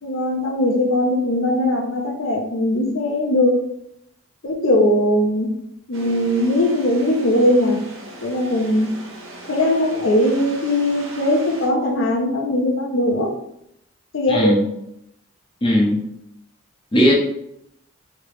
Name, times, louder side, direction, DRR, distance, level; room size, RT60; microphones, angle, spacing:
voice 1, 0.0-3.6 4.4-5.5 5.9-7.8 8.2-8.9 9.5-13.4 14.1-14.6, left 1 dB, 70° left, 1 dB, 0.6 m, -20 dB
sound 1, 5.9-11.7, right 2 dB, 70° right, 0.8 m, -38 dB
voice 2, 14.3-14.7 15.6-16.0 16.9-17.1, equal, 25° left, -2 dB, 0.5 m, -17 dB
3.3 x 2.9 x 3.1 m, 0.77 s
head